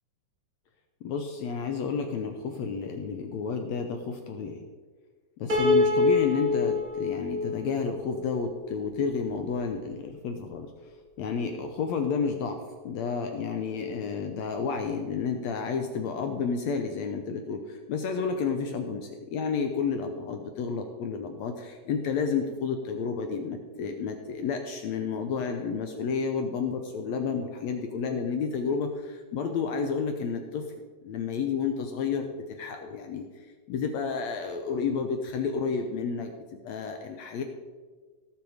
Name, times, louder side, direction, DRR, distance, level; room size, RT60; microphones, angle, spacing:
voice 1, 1.0-4.6 5.4-10.7 11.2-30.7 31.0-33.3 33.7-36.3 36.6-37.4, left 5 dB, 75° left, 5 dB, 1.7 m, -31 dB
Piano, 5.5-8.7, left 3 dB, 35° right, 1.7 m, -26 dB
17.0 x 6.1 x 4.9 m, 1.5 s
omnidirectional pair, 3.7 m